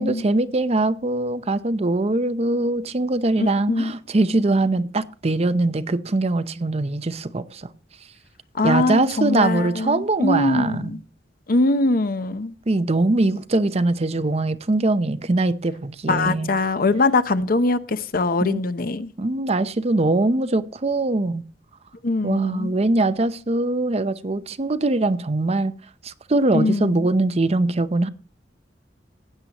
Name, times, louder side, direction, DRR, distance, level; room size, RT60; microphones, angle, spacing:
voice 1, 0.0-7.7 8.6-10.9 12.7-16.5 18.4-18.6 19.2-21.4 22.2-25.7 26.0-28.1, right 2 dB, 35° right, 0.6 m, -22 dB
voice 2, 3.4-3.9 8.5-11.0 11.5-12.5 16.1-19.1 22.0-22.7 26.5-27.1, left 2 dB, 50° left, 0.7 m, -22 dB
15.5 x 9.5 x 3.0 m
head